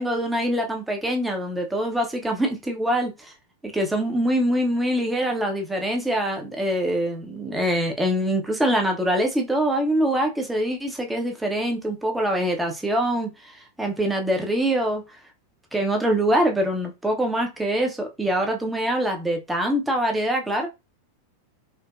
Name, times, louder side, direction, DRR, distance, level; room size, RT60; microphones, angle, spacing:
voice 1, 0.0-3.3 3.7-13.5 13.8-15.0 15.7-20.7, right 1 dB, 10° right, 0.7 m, -24 dB
4.5 x 2.1 x 2.4 m
figure-of-eight pair, 90°, 0 cm